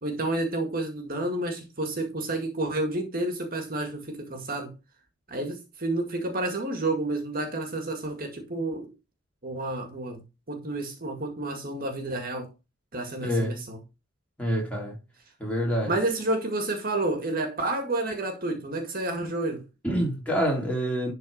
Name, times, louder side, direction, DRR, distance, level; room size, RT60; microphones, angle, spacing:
voice 1, 0.0-4.7 5.3-8.9 9.4-10.2 10.5-12.5 12.9-13.8 15.9-19.6, right 2 dB, 45° right, 1.9 m, -30 dB
voice 2, 13.2-13.6 14.4-15.0 15.4-15.9 19.8-21.1, equal, 5° left, 3.9 m, -26 dB
11.5 x 4.1 x 5.1 m
head